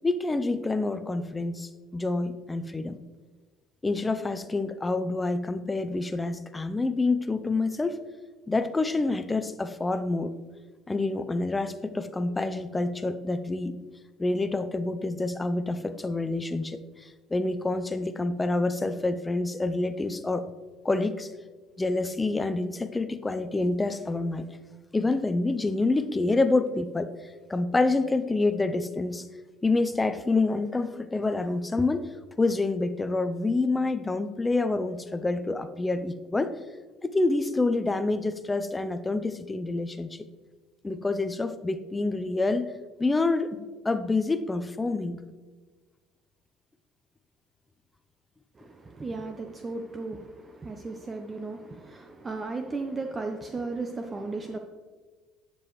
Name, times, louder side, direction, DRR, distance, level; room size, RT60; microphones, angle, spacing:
voice 1, 0.0-3.0 3.8-8.0 8.5-10.3 10.9-13.8 14.2-20.5 20.8-21.3 21.8-24.5 24.9-27.1 27.5-29.3 29.6-32.1 32.4-36.6 37.0-40.2 40.8-42.7 43.0-45.2, left 3 dB, 20° left, 10 dB, 0.6 m, -27 dB
voice 2, 48.6-54.6, right 3 dB, 25° right, 5 dB, 0.7 m, -35 dB
10.5 x 7.0 x 3.1 m, 1.4 s
supercardioid pair, 75°, 0 cm